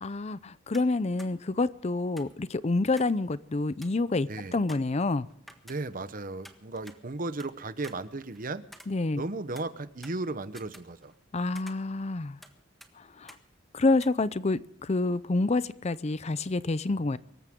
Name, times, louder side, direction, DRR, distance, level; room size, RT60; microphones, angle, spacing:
voice 1, 0.0-5.3 8.9-9.2 11.3-12.4 13.2-13.3 13.7-17.2, left 3 dB, 35° left, 0.5 m, -28 dB
sound 1, 0.7-0.9 1.2-1.3 2.2-3.2 3.5-3.6 3.8-4.1 4.7-6.1 6.4-7.5 7.8-9.3 9.6-11.3 11.6-12.6 12.8-12.9 13.3-13.4 14.0-14.1, equal, ahead, 1.5 m, -51 dB
voice 2, 4.3-4.6 5.6-8.6 9.2-11.1, right 2 dB, 45° right, 1.0 m, -35 dB
24.5 x 14.5 x 3.7 m
head